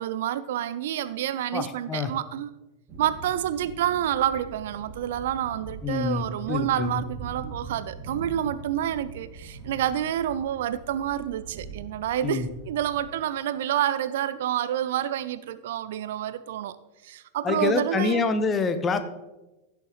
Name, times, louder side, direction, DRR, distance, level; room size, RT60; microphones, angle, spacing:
voice 1, 0.0-2.5 3.0-16.8 17.0-18.2, right 11 dB, 55° right, 15 dB, 0.4 m, -28 dB
voice 2, 1.5-2.1 5.8-7.0 12.2-12.5 17.4-19.0, left 4 dB, 20° left, 10 dB, 0.9 m, -26 dB
sound 1, 2.9-13.1, right 3 dB, 30° right, 2.5 m, -43 dB
16.0 x 7.0 x 3.1 m, 1.0 s
figure-of-eight pair, 90°, 0 cm